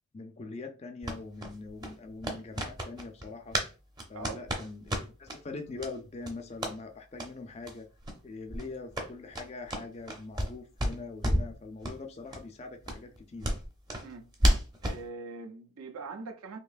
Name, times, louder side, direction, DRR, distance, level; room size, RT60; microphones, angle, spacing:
voice 1, 0.1-3.6 4.1-7.9 8.2-13.5, left 3 dB, 30° left, 0.4 m, -43 dB
sound 1, 1.0-3.7 4.0-5.4 5.8-5.9 6.2-6.8 7.1-7.3 7.6-7.7 8.0-8.2 8.5-10.5 10.8-11.5 11.8-12.0 12.3-12.4 12.8-15.0, equal, 20° right, 0.6 m, -31 dB
voice 2, 14.0-16.6, right 4 dB, 80° right, 0.6 m, -43 dB
4.4 x 2.9 x 2.5 m
head